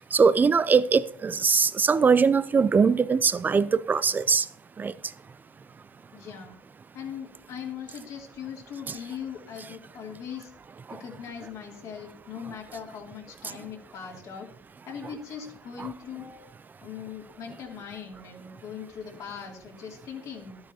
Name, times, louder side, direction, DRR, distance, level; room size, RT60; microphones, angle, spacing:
voice 1, 0.1-4.4 4.8-4.9 15.8-15.9, right 5 dB, 25° right, 0.5 m, -21 dB
voice 2, 6.1-6.5 6.9-10.5 10.9-14.5 14.9-16.4 16.8-20.6, left 7 dB, 60° left, 2.8 m, -40 dB
12.0 x 9.6 x 2.9 m
supercardioid pair, 80°, 7 cm